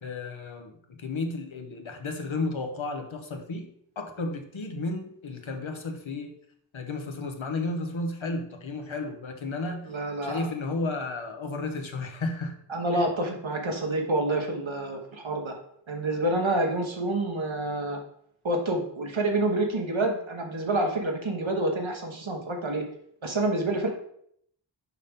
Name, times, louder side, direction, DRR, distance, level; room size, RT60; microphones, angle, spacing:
voice 1, 0.0-3.7 4.0-6.3 6.7-9.9 10.2-12.5 12.9-13.1, left 3 dB, 75° left, 4 dB, 1.1 m, -33 dB
voice 2, 9.8-10.5 12.7-15.5 15.9-18.0 18.4-22.9 23.2-23.9, right 2 dB, 75° right, 2 dB, 1.3 m, -28 dB
6.4 x 5.2 x 3.6 m, 0.69 s
wide cardioid pair, 45°, 47 cm